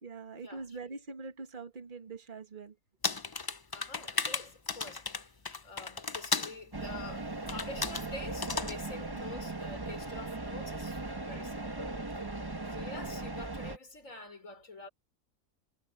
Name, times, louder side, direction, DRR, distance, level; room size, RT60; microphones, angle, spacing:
voice 1, 0.0-2.8 8.9-9.2, right 4 dB, 40° right, 1.8 m, -44 dB
sound 1, 3.0-6.6 7.5-8.1 8.4-8.8, left 4 dB, 30° left, 0.4 m, -34 dB
voice 2, 3.7-12.0 12.7-14.9, left 2 dB, 75° left, 5.2 m, -47 dB
sound 2, 6.7-13.8, right 2 dB, 20° right, 1.4 m, -38 dB
omnidirectional pair, 1.4 m